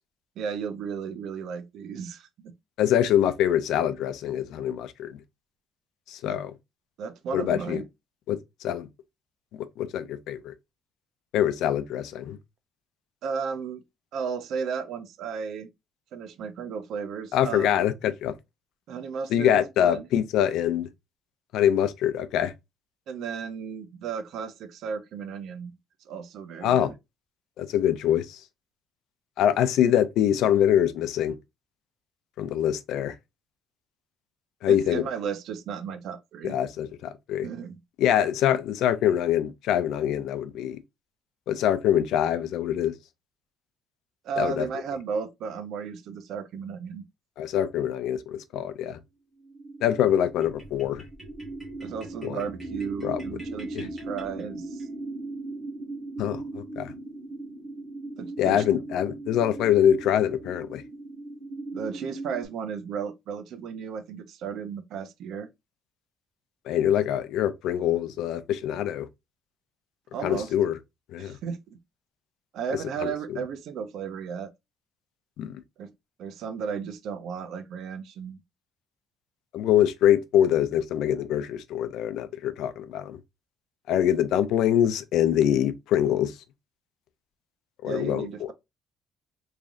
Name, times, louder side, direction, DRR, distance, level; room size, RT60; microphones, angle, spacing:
voice 1, 0.4-2.5 6.3-6.4 7.0-7.8 13.2-13.8 14.1-15.7 16.1-17.7 18.9-20.1 23.1-25.8 26.1-26.9 34.7-36.6 37.4-37.8 44.2-47.0 51.8-54.9 58.2-58.6 61.7-65.5 70.1-70.5 71.2-71.8 72.5-74.5 75.8-75.9 76.2-78.4 87.9-88.5, right 6 dB, 60° right, 0.5 m, -34 dB
voice 2, 2.8-5.2 6.1-6.5 7.3-7.8 8.3-8.9 9.8-10.5 11.3-12.4 17.3-18.3 19.3-20.9 21.5-22.5 26.6-26.9 27.6-28.4 29.4-31.4 32.4-33.1 34.6-35.0 36.4-37.5 38.0-40.8 41.5-42.9 44.4-44.7 47.4-49.0 49.8-51.0 52.2-52.4 53.0-53.2 53.7-53.9 56.2-56.9 58.4-60.8 66.7-69.1 70.2-70.8 71.1-71.3 73.0-73.1 75.4-75.6 79.5-83.2 83.9-86.3 87.8-88.5, left 10 dB, 75° left, 0.5 m, -24 dB
sound 1, 49.4-62.5, right 2 dB, 40° right, 1.9 m, -39 dB
sound 2, 50.4-54.9, equal, 5° right, 1.5 m, -48 dB
3.6 x 3.2 x 2.5 m
cardioid pair, 170°, 0 cm